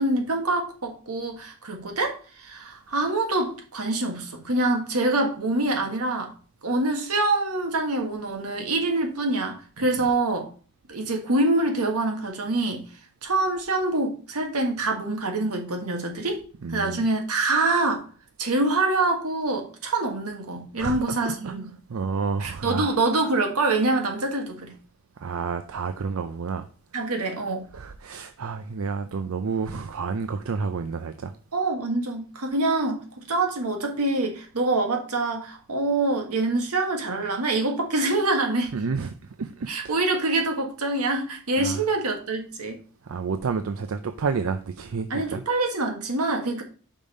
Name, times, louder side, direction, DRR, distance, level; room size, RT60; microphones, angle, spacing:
voice 1, 0.0-6.3 6.6-10.5 10.9-12.8 13.2-16.4 16.7-18.0 18.4-21.7 22.4-24.7 26.9-27.6 31.5-38.7 39.7-42.8 45.1-46.6, right 2 dB, 90° right, 1.6 m, -25 dB
voice 2, 16.6-17.0 20.8-21.0 21.2-21.5 21.9-23.0 25.2-26.7 27.7-31.3 38.7-39.9 41.6-41.8 43.0-45.4, right 5 dB, 70° right, 0.5 m, -30 dB
5.4 x 5.1 x 5.3 m
head